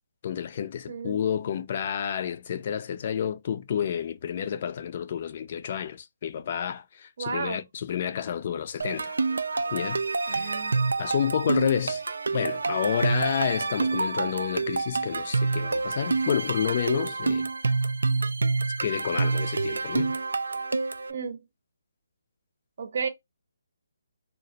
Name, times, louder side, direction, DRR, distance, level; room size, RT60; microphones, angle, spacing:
voice 1, 0.2-9.2 9.7-10.6 11.0-12.0 12.3-17.5 18.8-20.2, left 8 dB, 40° left, 0.4 m, -30 dB
voice 2, 0.9-1.2 7.2-7.6 10.3-10.8 21.1-21.4 22.8-23.1, right 5 dB, 55° right, 0.7 m, -33 dB
sound 1, 8.8-21.1, right 3 dB, 85° right, 0.3 m, -27 dB
2.4 x 2.1 x 3.9 m
hypercardioid pair, 165°, 0 cm